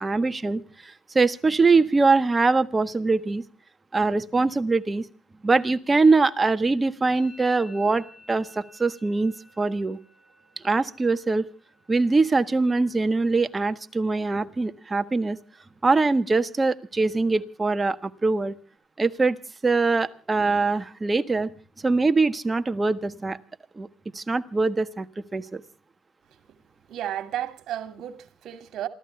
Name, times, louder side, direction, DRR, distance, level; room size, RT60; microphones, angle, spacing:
voice 1, 0.0-3.4 3.9-5.0 5.4-10.0 10.6-11.4 11.9-15.4 15.8-18.6 19.0-19.4 19.6-21.5 21.8-23.4 23.8-23.9 24.1-25.6, right 3 dB, 25° right, 1.4 m, -23 dB
Musical instrument, 7.1-14.8 15.0-15.6 15.9-16.5 16.7-18.8, left 1 dB, 70° left, 5.9 m, -56 dB
voice 2, 26.9-28.9, right 11 dB, 70° right, 2.4 m, -33 dB
28.0 x 14.0 x 3.3 m
supercardioid pair, 75°, 0 cm